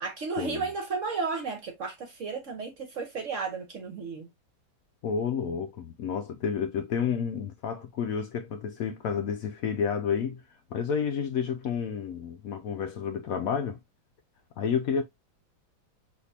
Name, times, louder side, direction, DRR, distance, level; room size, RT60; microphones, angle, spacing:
voice 1, 0.0-4.3, right 4 dB, 55° right, 0.9 m, -33 dB
voice 2, 5.0-10.4 10.7-13.8 14.6-15.0, left 7 dB, 90° left, 0.7 m, -30 dB
6.6 x 2.6 x 2.6 m
omnidirectional pair, 2.2 m